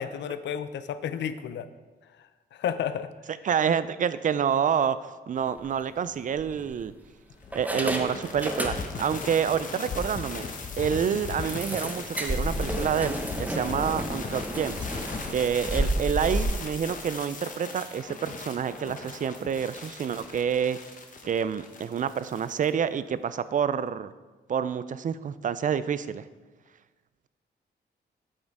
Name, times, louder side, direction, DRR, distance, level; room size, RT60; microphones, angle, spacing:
voice 1, 0.0-1.7 2.2-3.1, left 8 dB, 85° left, 12 dB, 0.5 m, -32 dB
voice 2, 3.4-5.0 5.3-6.9 7.5-10.5 10.8-14.9 15.3-20.8 21.2-24.1 24.5-26.2, right 7 dB, 45° right, 14 dB, 0.4 m, -28 dB
sound 1, 5.5-5.7 6.4-7.0 7.5-9.2 9.5-9.6 10.0-10.1 10.5-10.6 11.5-16.4, right 1 dB, 10° right, 0.9 m, -32 dB
sound 2, 7.4-22.7, left 4 dB, 45° left, 1.0 m, -37 dB
8.8 x 6.4 x 4.7 m, 1.3 s
cardioid pair, 110°, 18 cm